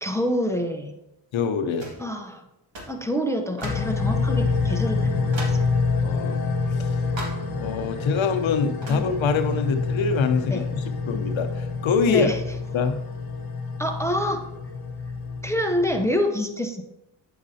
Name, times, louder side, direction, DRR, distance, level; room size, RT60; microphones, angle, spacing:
voice 1, 0.0-0.9 2.0-2.5 2.9-5.6 8.9-9.0 10.5-10.7 12.1-12.4 13.8-14.4 15.4-16.8, equal, 5° left, 5 dB, 0.6 m, -26 dB
voice 2, 1.3-1.9 6.0-6.4 6.7-6.9 7.6-12.3 12.7-13.0, left 5 dB, 70° left, 7 dB, 0.8 m, -24 dB
sound 1, 1.8-2.1 2.7-3.0 3.6-4.0 4.6-4.7 5.3-5.7 7.2-7.5 8.8-9.1, right 1 dB, 65° right, 2.1 m, -36 dB
sound 2, 3.6-16.1, left 4 dB, 50° left, 1.0 m, -27 dB
8.6 x 6.3 x 2.8 m, 0.90 s
cardioid pair, 80°, 48 cm